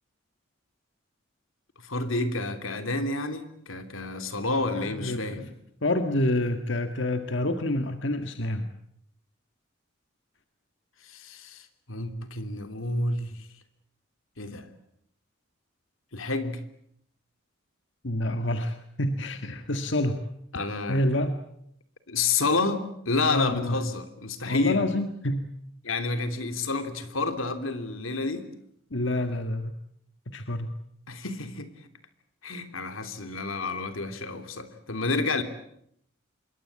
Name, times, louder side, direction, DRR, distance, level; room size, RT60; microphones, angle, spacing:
voice 1, 1.8-5.5 11.1-13.3 14.4-14.7 16.1-16.6 20.5-21.0 22.1-24.9 25.8-28.5 31.1-31.7 32.4-35.4, left 3 dB, 90° left, 9 dB, 3.1 m, -29 dB
voice 2, 4.7-5.5 5.8-8.7 18.0-20.2 20.9-21.4 23.3-23.8 24.4-25.5 28.9-29.7 30.3-30.7, left 1 dB, 65° left, 7 dB, 1.7 m, -28 dB
27.0 x 23.0 x 8.6 m, 0.73 s
head